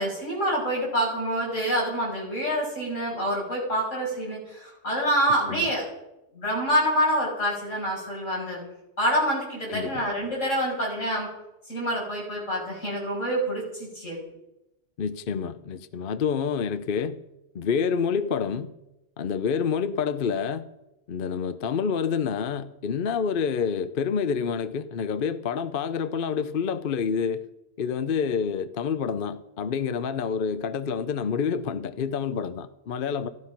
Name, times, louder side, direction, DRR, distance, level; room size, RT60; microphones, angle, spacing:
voice 1, 0.0-5.9 6.3-8.6 9.0-11.3 11.7-14.2, equal, 90° left, 6.4 m, -27 dB
voice 2, 9.7-10.1 15.0-17.2 17.5-18.7 19.2-20.7 21.1-27.5 27.8-33.3, left 6 dB, 50° left, 0.8 m, -28 dB
15.5 x 12.5 x 5.8 m
omnidirectional pair, 1.3 m